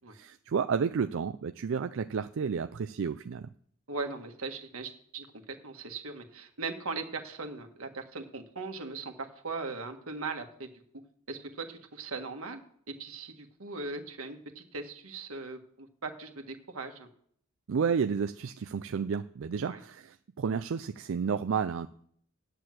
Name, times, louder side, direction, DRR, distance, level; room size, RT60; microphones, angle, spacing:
voice 1, 0.1-3.5 17.7-21.9, right 6 dB, 65° right, 10 dB, 0.4 m, -31 dB
voice 2, 3.9-5.3 5.6-10.7 11.3-12.6 12.9-17.1 19.6-19.8, right 3 dB, 85° right, 5 dB, 1.7 m, -39 dB
9.5 x 6.6 x 7.7 m, 0.64 s
head